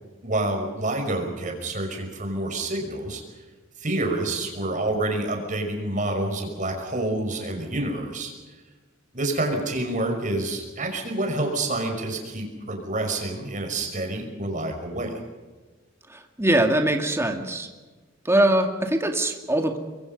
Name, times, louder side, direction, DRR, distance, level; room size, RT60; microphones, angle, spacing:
voice 1, 0.2-3.2 3.8-8.3 9.1-15.2, right 2 dB, 40° right, 3 dB, 5.7 m, -28 dB
voice 2, 16.1-17.7 18.2-19.8, right 1 dB, 15° right, 4 dB, 2.2 m, -22 dB
25.5 x 23.5 x 5.4 m, 1.3 s
head